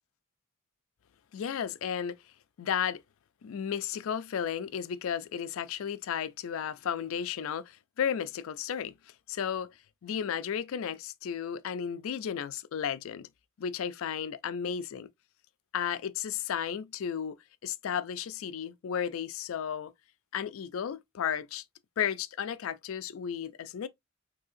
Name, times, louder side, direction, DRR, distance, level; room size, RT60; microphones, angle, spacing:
voice 1, 1.3-2.2 2.6-3.0 3.4-8.9 9.3-9.7 10.0-13.3 13.6-15.1 15.7-17.4 17.6-19.9 20.3-21.6 22.0-23.9, left 8 dB, 65° left, 0.3 m, -33 dB
4.0 x 2.7 x 2.5 m
head